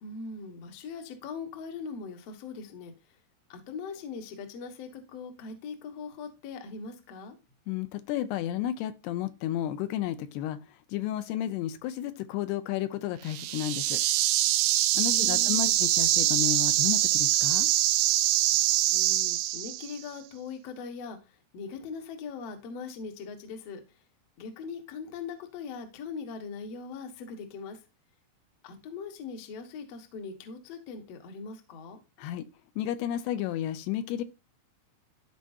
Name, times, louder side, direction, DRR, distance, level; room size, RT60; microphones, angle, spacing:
voice 1, 0.0-3.2 3.5-7.4 15.0-15.8 18.9-24.0 24.4-27.8 28.6-32.0, left 5 dB, 65° left, 1.6 m, -41 dB
voice 2, 7.7-10.6 10.9-14.0 15.0-17.7 32.2-32.5 32.8-34.2, left 12 dB, 85° left, 2.6 m, -32 dB
sound 1, 13.3-20.0, right 14 dB, 80° right, 2.4 m, -24 dB
13.5 x 4.6 x 2.7 m
omnidirectional pair, 4.8 m